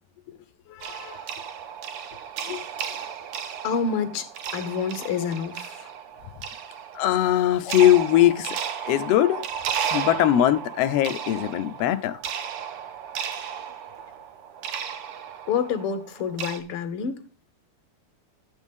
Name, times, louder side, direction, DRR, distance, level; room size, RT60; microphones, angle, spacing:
voice 1, 0.7-1.2 2.5-2.6 6.9-8.6 8.9-9.5 9.9-12.2, left 12 dB, 90° left, 1.4 m, -21 dB
sound 1, 0.8-16.6, right 8 dB, 65° right, 1.5 m, -34 dB
voice 2, 3.6-5.9 7.6-7.7 15.5-17.2, left 6 dB, 60° left, 1.6 m, -28 dB
12.0 x 8.2 x 3.6 m
omnidirectional pair, 3.5 m